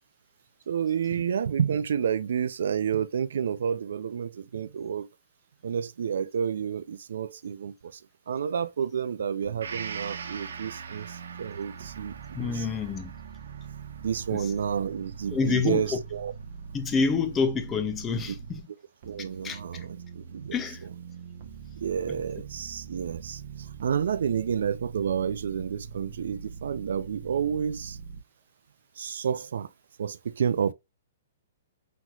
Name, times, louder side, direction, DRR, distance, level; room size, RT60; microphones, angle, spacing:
voice 1, 0.7-5.1 5.6-12.7 14.0-16.3 19.0-20.6 21.8-28.0 29.0-29.7 30.0-30.7, right 7 dB, 65° right, 0.4 m, -30 dB
sound 1, 9.4-18.6 19.0-28.2, right 6 dB, 40° right, 0.7 m, -43 dB
Gong, 9.6-17.2 17.6-17.7, right 6 dB, 85° right, 0.9 m, -44 dB
voice 2, 12.3-13.1 14.3-14.5 15.3-16.0 16.7-18.7 19.4-19.9 20.5-20.8, left 5 dB, 10° left, 0.4 m, -28 dB
5.7 x 3.0 x 2.3 m
hypercardioid pair, 175°, 0 cm